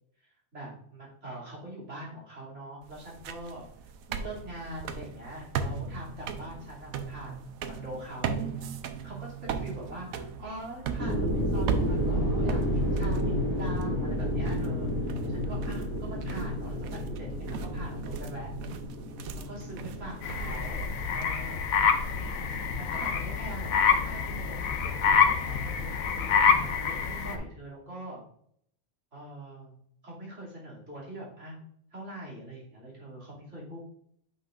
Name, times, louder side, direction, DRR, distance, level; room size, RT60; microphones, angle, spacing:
voice 1, 0.2-3.7 4.1-8.7 9.0-16.8 17.0-18.7 19.5-20.9 21.1-21.6 22.7-28.2 29.1-29.8 30.0-31.6 31.9-33.8, right 1 dB, 55° right, -6 dB, 3.0 m, -43 dB
sound 1, 2.8-21.2, right 6 dB, 90° right, 1.1 m, -38 dB
sound 2, 11.0-20.8, equal, 15° left, 1.7 m, -31 dB
sound 3, 20.2-27.4, left 6 dB, 80° left, 1.2 m, -26 dB
8.4 x 5.8 x 2.5 m, 0.67 s
omnidirectional pair, 1.4 m